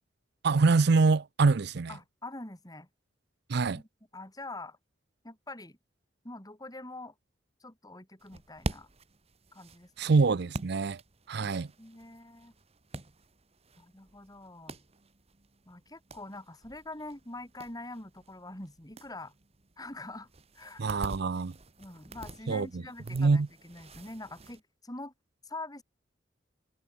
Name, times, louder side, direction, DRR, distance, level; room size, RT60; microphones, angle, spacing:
voice 1, 0.4-1.9 3.5-3.8 10.0-11.0 11.3-11.7 20.8-21.5 22.5-22.8 23.1-23.5, right 4 dB, 60° right, 0.6 m, -25 dB
voice 2, 1.9-2.9 3.6-3.9 4.1-4.8 5.2-5.8 6.2-7.1 7.6-8.9 9.5-10.1 11.8-12.5 13.8-14.8 15.7-19.3 19.8-20.3 20.5-21.0 21.8-25.1 25.4-25.8, left 2 dB, 20° left, 4.3 m, -44 dB
sound 1, 8.2-24.6, right 2 dB, 35° right, 1.5 m, -46 dB
head